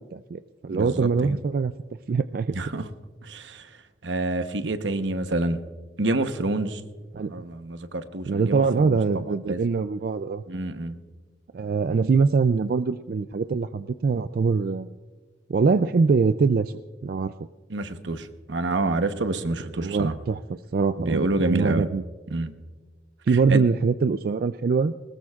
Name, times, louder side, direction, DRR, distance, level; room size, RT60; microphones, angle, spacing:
voice 1, 0.0-1.7 2.1-2.6 7.1-7.3 8.3-10.4 11.5-14.9 15.5-16.7 17.0-17.3 19.8-20.4 20.7-22.0 23.3-24.9, right 4 dB, 50° right, 12 dB, 0.3 m, -23 dB
voice 2, 0.7-1.4 2.5-2.9 3.2-3.7 4.0-5.6 6.0-6.8 7.3-9.6 10.5-11.0 17.7-20.1 21.0-21.9 22.3-22.5 23.5-23.6, right 2 dB, 80° right, 9 dB, 1.0 m, -28 dB
20.5 x 19.5 x 2.4 m, 1.4 s
head